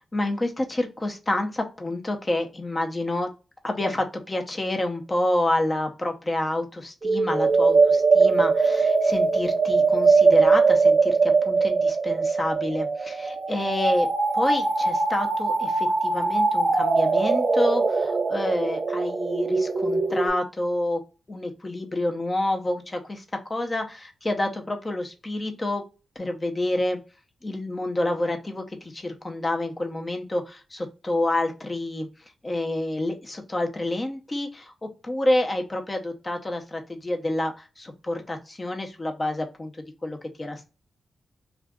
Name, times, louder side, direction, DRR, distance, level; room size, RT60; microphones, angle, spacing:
voice 1, 0.1-3.3 3.6-14.1 14.4-21.0 21.3-25.8 26.2-27.0 27.4-32.1 32.4-39.7 40.0-40.7, left 1 dB, 30° left, 4 dB, 0.7 m, -28 dB
sound 1, 7.0-20.3, right 4 dB, 50° right, 0.7 m, -21 dB
2.5 x 2.4 x 3.6 m, 0.32 s
cardioid pair, 55°, 0 cm